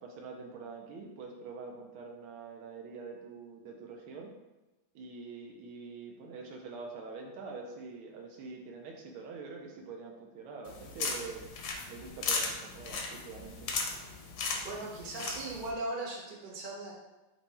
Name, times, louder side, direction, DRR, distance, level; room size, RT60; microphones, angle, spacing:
voice 1, 0.0-4.3 4.9-11.4 11.9-13.7, right 4 dB, 85° right, 1 dB, 1.5 m, -45 dB
sound 1, 10.7-15.7, left 4 dB, 75° left, 1.3 m, -37 dB
voice 2, 14.6-16.9, right 2 dB, 50° right, -3 dB, 0.5 m, -38 dB
4.5 x 2.6 x 4.1 m, 1.1 s
omnidirectional pair, 2.3 m